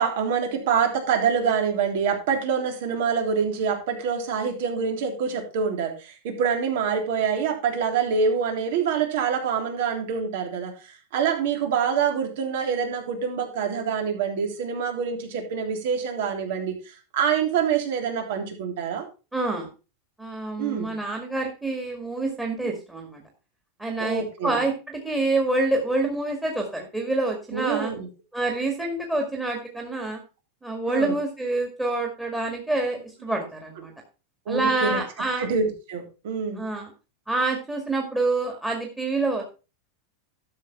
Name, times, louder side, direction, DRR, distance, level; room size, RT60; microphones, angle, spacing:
voice 1, 0.0-19.0 20.6-20.9 22.6-22.7 24.0-24.6 27.5-28.1 30.9-31.2 34.5-35.0 35.4-36.6, right 6 dB, 65° right, 3 dB, 3.4 m, -26 dB
voice 2, 19.3-19.7 20.2-23.2 23.8-27.9 28.3-30.2 30.6-33.9 34.5-35.5 36.6-36.9 37.3-39.4, right 2 dB, 5° right, 0 dB, 2.0 m, -27 dB
12.0 x 6.6 x 4.6 m, 0.32 s
supercardioid pair, 155°, 0 cm